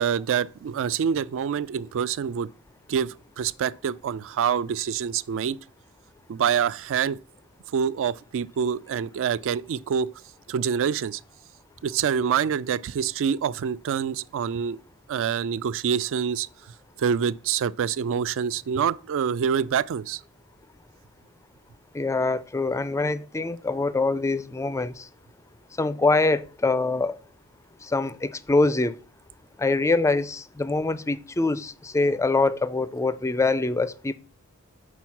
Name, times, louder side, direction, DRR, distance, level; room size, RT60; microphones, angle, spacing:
voice 1, 0.0-2.5 2.9-5.6 6.3-7.2 7.7-10.1 10.5-11.2 11.8-14.8 15.1-16.5 17.0-20.2, right 7 dB, 60° right, 0.3 m, -26 dB
voice 2, 21.9-25.1 25.8-27.2 27.8-29.0 29.6-34.1, left 3 dB, 15° left, 0.3 m, -24 dB
6.2 x 4.5 x 5.6 m
head